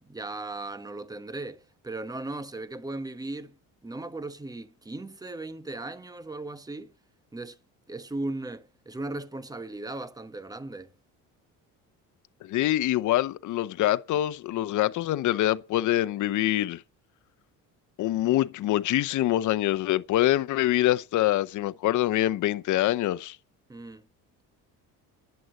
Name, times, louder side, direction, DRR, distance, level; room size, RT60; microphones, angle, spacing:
voice 1, 0.0-6.9 7.3-7.6 7.9-10.9 23.7-24.0, right 2 dB, 10° right, 1.2 m, -37 dB
voice 2, 12.4-16.8 18.0-23.4, left 14 dB, 60° left, 0.9 m, -25 dB
11.0 x 8.0 x 7.6 m
cardioid pair, 105°, 34 cm